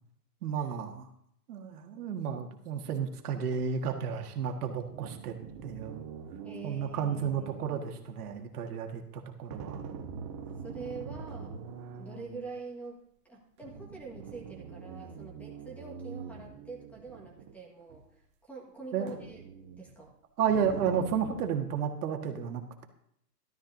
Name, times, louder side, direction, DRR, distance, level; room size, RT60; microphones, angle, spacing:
voice 1, 0.4-1.1 1.5-5.3 5.6-6.0 6.6-9.8 18.9-19.2 20.4-22.9, right 7 dB, 65° right, 4 dB, 1.8 m, -32 dB
voice 2, 1.7-2.1 6.4-7.6 10.6-11.6 11.9-13.0 13.3-19.4 19.8-20.1, right 3 dB, 5° left, -1 dB, 1.6 m, -45 dB
sound 1, 3.5-3.8 4.4-8.4 9.5-12.5 13.6-17.6 17.9-18.0 19.1-19.9 20.5-21.4, right 6 dB, 20° right, 0.4 m, -44 dB
13.0 x 12.5 x 2.7 m, 0.70 s
hypercardioid pair, 140°, 49 cm